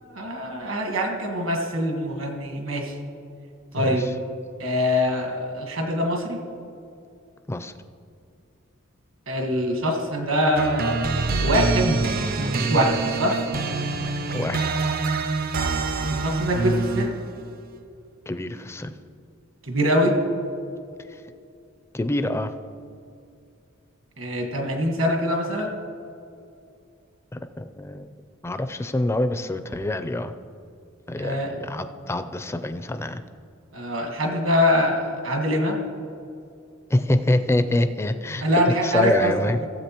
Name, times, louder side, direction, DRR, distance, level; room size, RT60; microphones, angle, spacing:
voice 1, 0.0-2.9 3.7-4.1 4.6-6.4 9.3-12.0 12.4-13.4 16.1-17.2 19.6-20.1 24.2-25.8 31.2-31.5 33.7-35.8 38.4-39.7, equal, 70° right, 2 dB, 1.5 m, -24 dB
voice 2, 3.8-4.1 7.5-7.7 14.3-14.7 18.3-18.9 21.1-21.2 21.9-22.5 27.3-28.1 28.4-30.3 31.1-33.2 36.9-39.6, left 1 dB, 15° left, 10 dB, 0.4 m, -26 dB
sound 1, 10.6-17.3, right 4 dB, 45° right, 0.5 m, -25 dB
16.5 x 7.7 x 3.0 m, 2.5 s
head